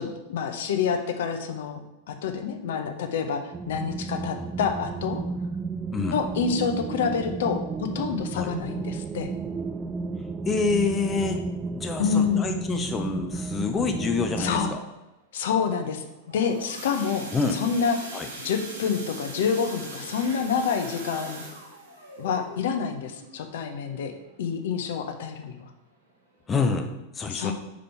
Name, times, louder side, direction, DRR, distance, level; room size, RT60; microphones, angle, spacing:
voice 1, 0.0-1.8 2.1-5.2 6.1-9.3 12.0-12.5 14.4-14.7 15.3-16.0 16.3-18.0 18.4-21.4 22.2-24.1 24.4-25.6 27.3-27.5, left 6 dB, 55° left, 6 dB, 0.8 m, -27 dB
sound 1, 3.5-14.8, right 4 dB, 15° right, 0.4 m, -33 dB
voice 2, 10.4-11.4 11.7-14.8 17.3-17.6 18.1-18.3 26.5-26.9 27.1-27.5, left 4 dB, 20° left, 5 dB, 0.6 m, -27 dB
sound 2, 16.1-24.7 25.2-25.4 25.7-25.8 26.3-26.4, right 2 dB, 80° right, 2.0 m, -41 dB
5.2 x 5.0 x 5.8 m, 0.97 s
figure-of-eight pair, 90°, 0 cm